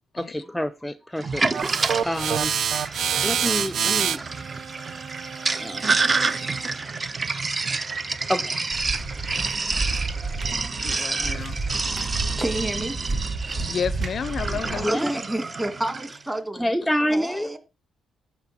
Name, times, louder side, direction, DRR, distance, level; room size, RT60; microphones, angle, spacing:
voice 1, 0.1-1.7 2.0-2.5 3.2-4.2 5.5-6.1 8.3-8.6 14.7-15.1 16.5-17.5, equal, 5° left, 0.8 m, -28 dB
Sink (filling or washing), 1.2-16.2, right 4 dB, 30° right, 0.9 m, -29 dB
sound 1, 1.5-6.7, right 8 dB, 65° right, 0.6 m, -27 dB
sound 2, 8.7-14.9, right 3 dB, 50° right, 3.6 m, -31 dB
voice 2, 10.8-11.6 13.7-15.0, left 7 dB, 50° left, 0.5 m, -30 dB
voice 3, 12.4-13.0 14.8-16.7 17.1-17.6, right 1 dB, 10° right, 2.1 m, -29 dB
11.5 x 4.2 x 7.6 m
cardioid pair, 90°, 0 cm